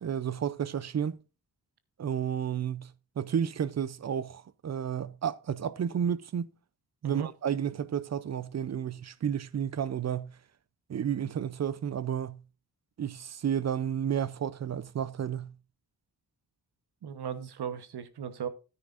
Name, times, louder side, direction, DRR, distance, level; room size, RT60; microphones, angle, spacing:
voice 1, 0.0-1.2 2.0-2.9 3.2-6.5 7.0-10.3 10.9-12.4 13.0-15.5, right 8 dB, 45° right, 0.5 m, -31 dB
voice 2, 17.0-18.5, right 8 dB, 80° right, 1.1 m, -36 dB
13.5 x 9.7 x 2.5 m
wide cardioid pair, 145°, 39 cm